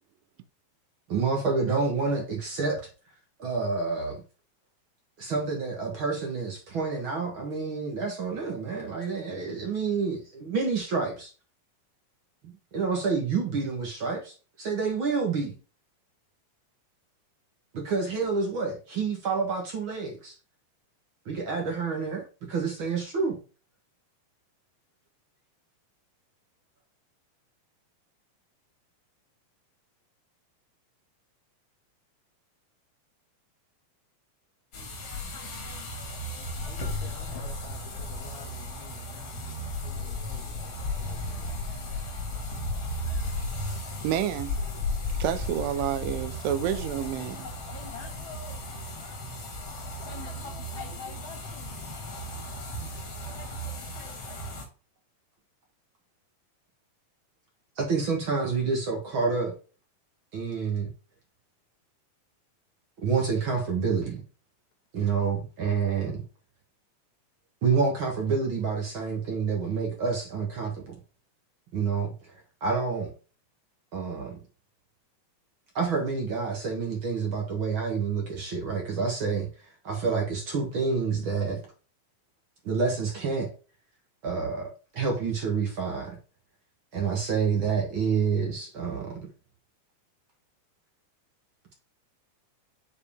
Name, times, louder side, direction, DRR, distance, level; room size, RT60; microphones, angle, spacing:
voice 1, 1.1-2.8 3.4-4.2 5.2-11.3 12.7-15.5 17.7-20.3 21.2-23.4 57.8-59.5 60.3-60.9 63.0-64.2 64.9-66.2 67.6-71.0 71.7-73.1 73.9-74.4 75.7-81.6 82.6-83.5 84.2-84.7 84.9-86.2 86.9-89.2, right 5 dB, 55° right, 1.5 m, -28 dB
sound 1, 34.7-54.7, left 1 dB, 45° left, 2.0 m, -35 dB
voice 2, 36.6-41.7, left 6 dB, 70° left, 1.9 m, -51 dB
voice 3, 44.0-44.6 45.2-47.5, right 10 dB, 80° right, 2.3 m, -29 dB
7.1 x 4.8 x 3.4 m
omnidirectional pair, 3.9 m